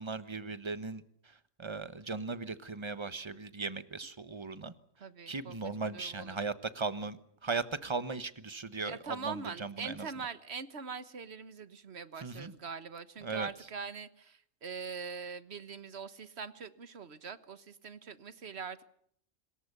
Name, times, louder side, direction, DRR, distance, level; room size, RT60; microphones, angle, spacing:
voice 1, 0.0-4.7 5.3-10.1 12.2-12.5 13.2-13.5, right 4 dB, 25° right, 13 dB, 1.2 m, -38 dB
voice 2, 5.0-6.4 8.8-18.8, right 5 dB, 55° right, 13 dB, 1.5 m, -43 dB
26.5 x 21.5 x 6.8 m, 0.67 s
omnidirectional pair, 1.3 m